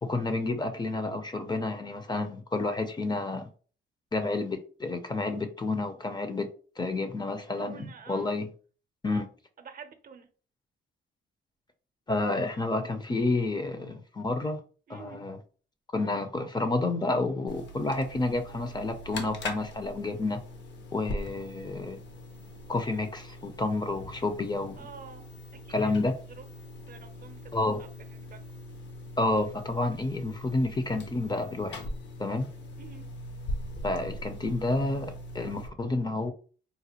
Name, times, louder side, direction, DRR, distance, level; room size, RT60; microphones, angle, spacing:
voice 1, 0.0-3.5 4.1-6.5 6.8-8.5 9.0-9.2 12.1-14.6 14.9-15.4 15.9-20.4 20.9-22.0 22.7-24.9 25.7-26.1 27.5-27.8 29.2-31.8 32.2-32.5 33.8-36.3, left 2 dB, 20° left, 0.5 m, -30 dB
voice 2, 7.6-8.3 9.1-9.3 9.6-10.3 14.9-15.2 24.8-25.2 25.6-25.9 26.4-26.5 26.9-28.4 32.8-33.0, right 6 dB, 45° right, 0.6 m, -48 dB
sound 1, 17.5-35.7, left 1 dB, 65° left, 0.8 m, -41 dB
4.0 x 2.1 x 2.8 m
cardioid pair, 90°, 20 cm